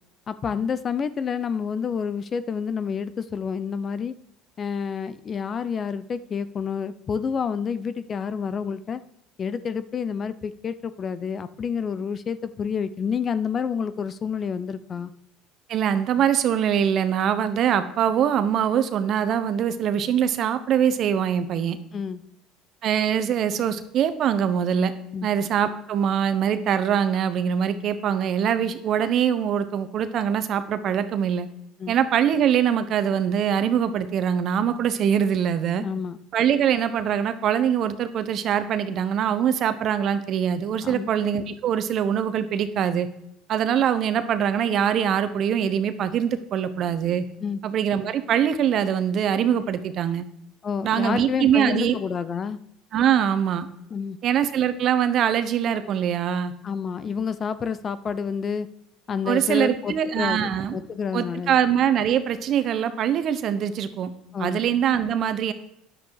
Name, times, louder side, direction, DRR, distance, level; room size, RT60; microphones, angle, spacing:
voice 1, 0.3-4.1 4.6-9.0 9.4-15.1 21.9-22.2 25.1-25.3 31.8-31.9 35.8-36.2 40.8-41.1 47.4-47.6 50.6-52.6 53.9-54.2 56.6-58.7 59.1-61.6 64.3-64.6, left 6 dB, 35° left, 14 dB, 0.6 m, -29 dB
voice 2, 15.7-21.8 22.8-24.9 25.2-31.5 31.9-35.8 36.3-43.1 43.5-47.2 47.6-50.2 50.8-52.0 52.9-53.7 54.2-56.5 59.3-60.8 61.1-64.1 64.4-65.5, right 9 dB, 50° right, 12 dB, 0.9 m, -23 dB
10.0 x 7.6 x 4.8 m, 0.80 s
supercardioid pair, 105°, 0 cm